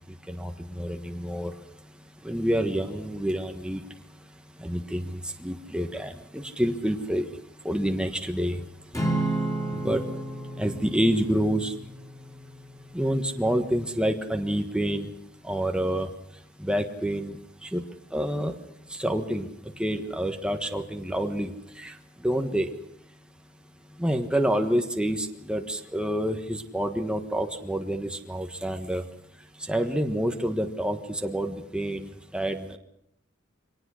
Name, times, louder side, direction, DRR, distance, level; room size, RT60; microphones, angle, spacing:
voice 1, 0.3-1.5 2.2-3.8 4.6-7.3 7.6-8.6 9.8-10.0 10.6-11.7 12.9-15.1 15.4-16.1 16.6-17.4 17.6-17.8 18.1-18.5 19.0-19.5 19.8-21.5 21.8-21.9 22.2-22.7 24.0-29.0 29.7-32.8, equal, 5° right, 5 dB, 1.4 m, -28 dB
Acoustic guitar / Strum, 8.9-13.4, right 2 dB, 15° left, 4.4 m, -32 dB
25.0 x 19.0 x 6.4 m, 0.77 s
head